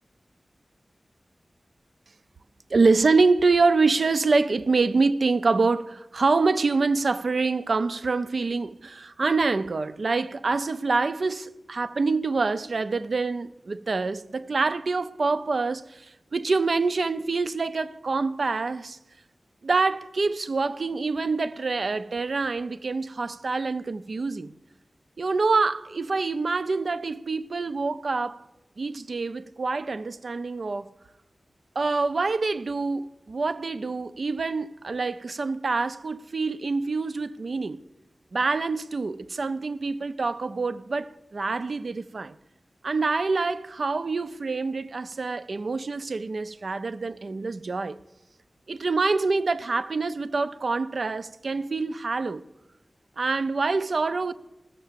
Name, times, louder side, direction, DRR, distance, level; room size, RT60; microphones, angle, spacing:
voice 1, 2.7-19.0 19.6-24.5 25.2-28.4 28.8-30.9 31.8-37.8 38.3-42.4 42.8-48.0 48.7-52.5 53.2-54.3, right 3 dB, 75° right, 0.4 m, -26 dB
14.5 x 6.7 x 7.3 m
cardioid pair, 50°, 0 cm